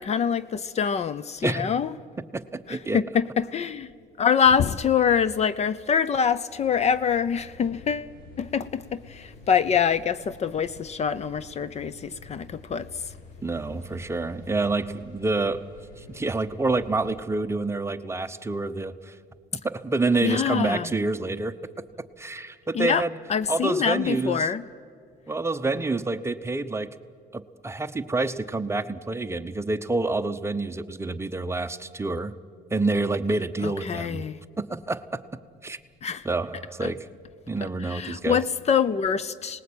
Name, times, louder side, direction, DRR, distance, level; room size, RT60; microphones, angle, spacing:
voice 1, 0.0-1.9 2.7-3.9 4.2-8.1 8.4-12.9 20.2-20.9 22.7-23.0 23.3-24.6 33.6-34.4 36.0-36.3 36.8-36.9 37.6-39.6, left 7 dB, 40° left, 0.7 m, -25 dB
voice 2, 1.4-1.8 2.2-3.0 13.4-15.7 16.0-19.2 19.6-21.6 22.2-23.2 23.5-24.5 25.3-26.9 27.3-32.3 32.7-34.2 34.6-35.2 35.6-35.8 36.2-37.1 37.5-38.4, right 3 dB, 15° right, 0.8 m, -28 dB
sound 1, 6.5-17.2, left 3 dB, 60° left, 6.0 m, -49 dB
28.0 x 19.5 x 8.6 m
cardioid pair, 110°, 17 cm